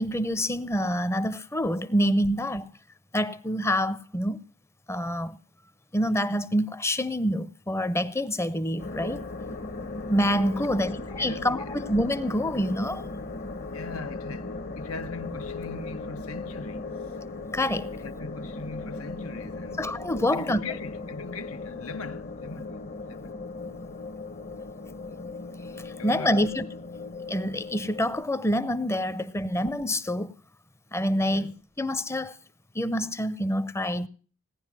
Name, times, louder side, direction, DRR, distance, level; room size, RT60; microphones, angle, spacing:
voice 1, 0.0-2.7 3.1-4.4 4.9-5.4 5.9-9.2 10.1-13.1 17.5-17.9 19.8-20.6 25.8-26.7 27.3-30.3 30.9-32.3 32.7-34.1, equal, 15° left, 0.6 m, -27 dB
sound 1, 8.8-28.2, left 3 dB, 45° left, 1.0 m, -37 dB
voice 2, 10.6-11.8 13.6-17.0 18.0-19.9 20.3-23.4 26.0-26.6 31.2-31.5, left 4 dB, 90° left, 1.1 m, -40 dB
17.0 x 10.5 x 6.0 m
head